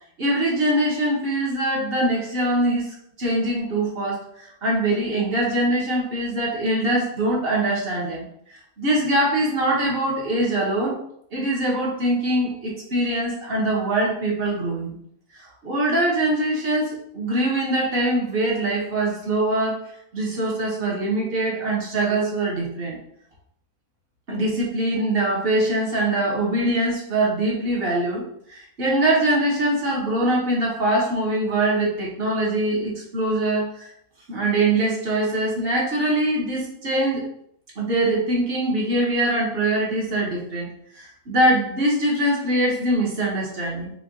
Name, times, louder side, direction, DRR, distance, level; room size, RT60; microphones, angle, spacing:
voice 1, 0.2-8.2 8.8-11.0 11.3-15.0 15.4-19.9 20.1-23.0 24.3-28.2 28.5-33.9 34.3-37.2 37.8-43.9, right 1 dB, 45° right, -3 dB, 1.2 m, -23 dB
4.7 x 2.5 x 2.7 m, 0.69 s
omnidirectional pair, 1.5 m